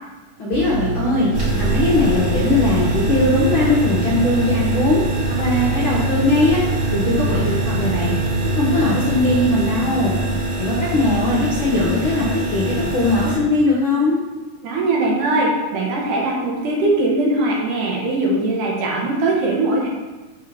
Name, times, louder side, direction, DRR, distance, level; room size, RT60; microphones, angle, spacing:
voice 1, 0.4-1.3 1.6-5.0 5.4-6.6 6.9-8.1 8.5-10.1 10.6-14.2, left 2 dB, 55° left, -6 dB, 1.5 m, -19 dB
sound 1, 0.5-9.5, right 5 dB, 85° right, 2.5 m, -26 dB
sound 2, 1.3-13.4, right 1 dB, 40° right, 2.9 m, -24 dB
voice 2, 14.6-19.9, right 2 dB, 70° right, -2 dB, 2.8 m, -20 dB
6.1 x 4.7 x 5.8 m, 1.2 s
omnidirectional pair, 3.9 m